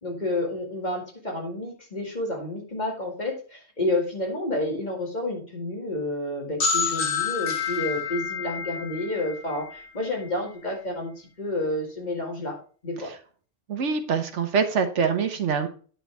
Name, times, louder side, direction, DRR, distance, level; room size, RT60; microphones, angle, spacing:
voice 1, 0.0-12.6 12.8-13.1, left 1 dB, 40° left, 0 dB, 2.3 m, -30 dB
sound 1, 6.6-10.2, left 6 dB, 55° left, 1.3 m, -29 dB
voice 2, 13.7-15.7, right 6 dB, 80° right, 7 dB, 1.3 m, -24 dB
9.2 x 6.7 x 3.4 m, 0.40 s
omnidirectional pair, 1.2 m